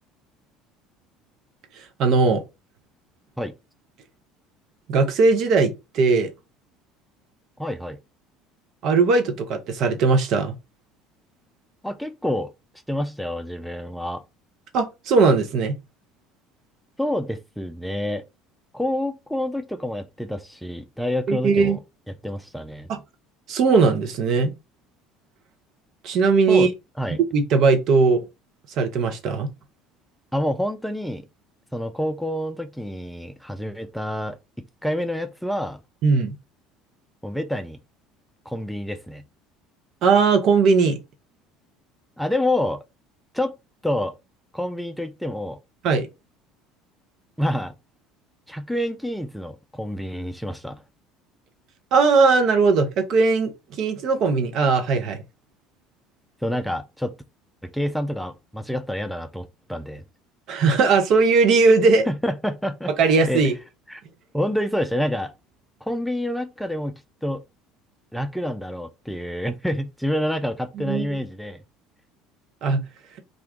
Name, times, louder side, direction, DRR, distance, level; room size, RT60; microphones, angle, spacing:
voice 1, 1.8-2.4 4.9-6.3 8.8-10.5 14.7-15.7 21.3-21.8 22.9-23.0 23.5-24.5 26.0-26.7 27.3-28.2 28.7-29.5 36.0-36.3 40.0-41.0 45.8-46.1 51.9-55.2 60.5-62.1 63.0-63.5 70.7-71.1 72.6-72.8, right 4 dB, 50° right, 0.7 m, -19 dB
voice 2, 7.6-8.0 11.8-12.5 12.9-14.2 17.0-18.2 18.7-21.8 22.2-22.9 26.5-26.7 27.0-27.2 30.3-31.3 31.7-34.4 34.8-35.8 37.2-37.8 38.5-39.2 42.2-42.8 43.3-43.5 43.8-44.1 44.5-45.6 47.4-47.7 48.5-50.8 56.4-57.1 57.6-60.0 62.1-63.4 63.9-64.0 64.3-65.3 65.8-67.4 68.1-71.6, left 1 dB, ahead, 0.4 m, -27 dB
2.5 x 2.3 x 3.5 m
figure-of-eight pair, 60°, 0 cm